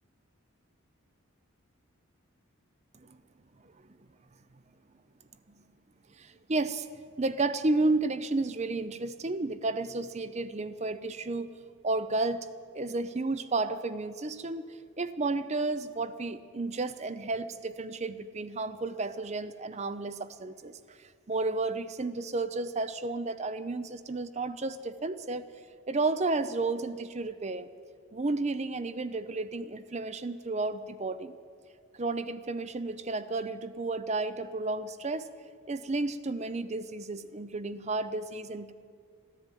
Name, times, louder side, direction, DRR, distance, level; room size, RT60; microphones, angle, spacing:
voice 1, 6.2-6.9 7.2-11.5 11.8-12.5 12.7-14.7 15.0-21.0 21.3-25.5 25.9-27.7 28.1-31.4 32.0-35.3 35.7-38.7, right 3 dB, 30° right, 14 dB, 0.5 m, -32 dB
14.5 x 11.0 x 9.1 m, 2.2 s
head